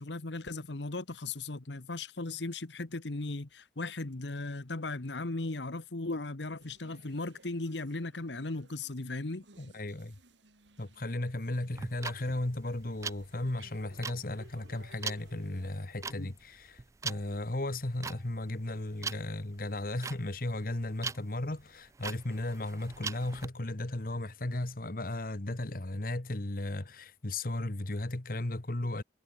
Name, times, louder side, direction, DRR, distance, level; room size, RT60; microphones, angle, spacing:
voice 1, 0.0-9.4 16.2-16.3, left 2 dB, 80° left, 1.3 m, -37 dB
sound 1, 6.6-15.9, right 2 dB, 85° right, 3.2 m, -60 dB
voice 2, 9.6-10.2 10.8-29.0, left 1 dB, 50° left, 1.4 m, -35 dB
sound 2, 11.7-23.5, right 5 dB, 15° right, 0.3 m, -41 dB
head